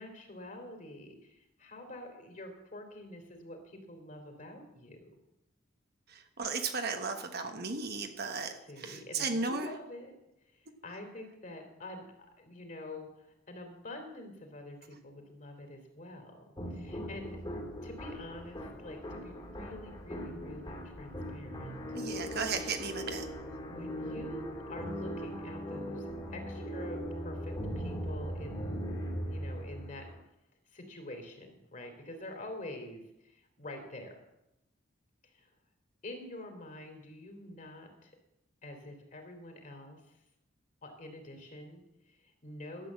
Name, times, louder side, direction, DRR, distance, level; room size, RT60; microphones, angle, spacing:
voice 1, 0.0-5.2 8.7-10.1 10.5-12.1 12.4-16.4 16.7-17.4 17.8-21.8 23.7-30.1 30.7-34.2 35.2-35.5 36.0-38.1 38.6-40.0 40.8-42.9, left 1 dB, 40° left, 4 dB, 2.9 m, -47 dB
voice 2, 6.1-9.7 21.9-23.3, right 4 dB, 55° right, 6 dB, 1.4 m, -35 dB
sound 1, 16.6-30.2, equal, 25° left, 2.3 m, -39 dB
12.0 x 8.5 x 7.4 m, 0.86 s
head